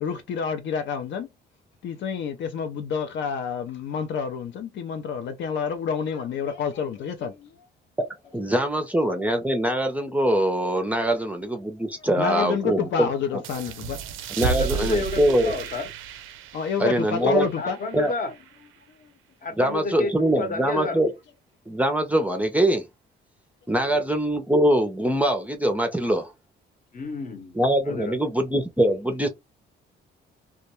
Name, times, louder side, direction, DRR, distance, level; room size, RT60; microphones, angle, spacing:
voice 1, 0.0-1.3 1.8-7.5 12.2-14.0 16.5-17.8 19.0-19.1 27.9-28.0, left 6 dB, 65° left, 0.4 m, -28 dB
voice 2, 8.3-13.4 14.4-15.5 16.8-17.5 17.9-18.1 19.6-21.1 21.7-22.8 23.7-26.3 27.5-29.3, right 1 dB, 5° right, 0.5 m, -23 dB
sound 1, 13.4-18.7, right 6 dB, 85° right, 0.4 m, -33 dB
voice 3, 14.3-15.9 17.2-18.3 19.4-21.0 23.9-24.0 26.9-27.6 27.9-28.2, left 3 dB, 45° left, 0.8 m, -30 dB
2.2 x 2.1 x 2.9 m
cardioid pair, 90°, 20 cm